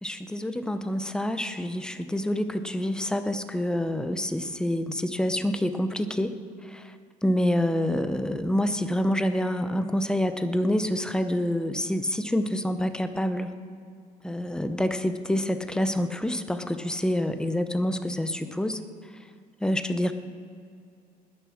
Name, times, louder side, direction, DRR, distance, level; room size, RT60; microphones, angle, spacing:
voice 1, 0.0-6.3 6.6-6.9 7.2-13.5 14.2-18.8 19.6-20.1, left 1 dB, 5° left, 9 dB, 0.8 m, -27 dB
20.0 x 6.8 x 6.4 m, 2.3 s
cardioid pair, 110°, 17 cm